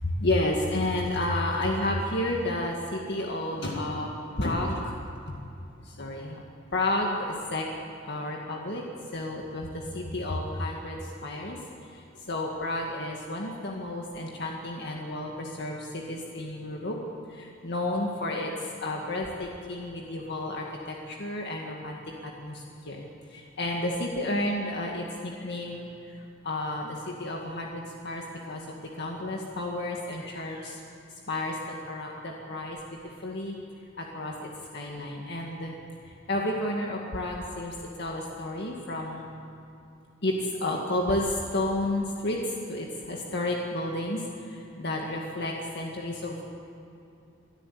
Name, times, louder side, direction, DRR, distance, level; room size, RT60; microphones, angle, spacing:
voice 1, 0.0-4.1 4.4-5.0 6.0-6.4 6.7-7.6 8.1-8.8 9.1-11.6 12.3-17.0 17.4-18.5 18.8-22.6 22.9-23.0 23.3-25.9 26.4-28.2 28.5-30.8 31.3-31.6 31.9-32.8 33.2-33.5 34.0-35.7 36.3-37.7 38.0-39.3 40.2-42.4 42.7-44.2 44.8-46.4, left 1 dB, 60° left, 0 dB, 2.0 m, -31 dB
24.0 x 13.0 x 8.6 m, 2.7 s
head